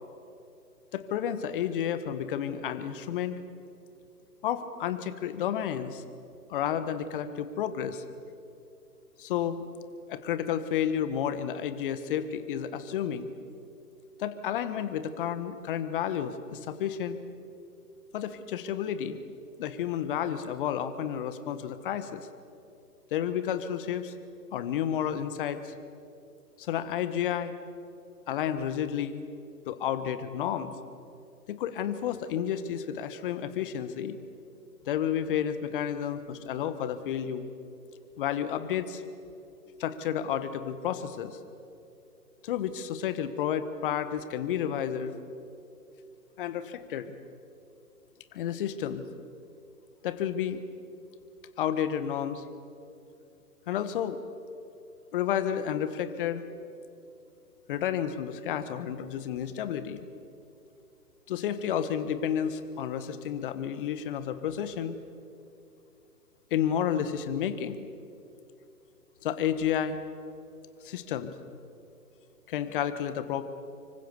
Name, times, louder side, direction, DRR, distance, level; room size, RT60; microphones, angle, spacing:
voice 1, 0.9-3.3 4.4-6.0 6.5-8.0 9.2-9.7 10.1-13.3 14.2-17.2 18.1-19.2 19.6-22.3 23.1-24.1 24.5-25.7 26.6-27.5 28.3-29.2 29.7-30.7 31.5-34.2 34.9-37.5 38.2-39.0 39.8-41.4 42.4-45.1 46.4-47.1 48.3-49.0 50.0-50.6 51.6-52.4 53.7-54.2 55.1-56.4 57.7-60.1 61.3-64.9 66.5-67.9 69.2-70.0 70.8-71.3 72.5-73.4, left 9 dB, 35° left, 11 dB, 1.5 m, -31 dB
25.5 x 24.5 x 7.0 m, 2.6 s
figure-of-eight pair, 135°, 48 cm